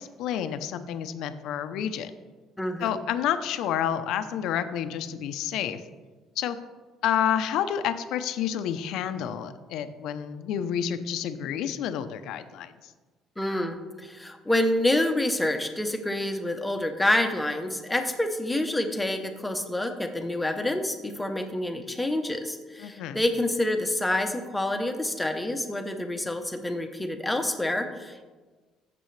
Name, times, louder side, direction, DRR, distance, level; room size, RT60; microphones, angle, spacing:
voice 1, 0.0-2.1 2.8-5.8 6.4-6.6 7.0-12.7 22.8-23.2, left 9 dB, 70° left, 10 dB, 0.6 m, -29 dB
voice 2, 2.6-2.9 13.4-28.3, left 1 dB, 5° left, 5 dB, 0.8 m, -27 dB
14.5 x 6.8 x 3.2 m, 1.3 s
cardioid pair, 150°, 0 cm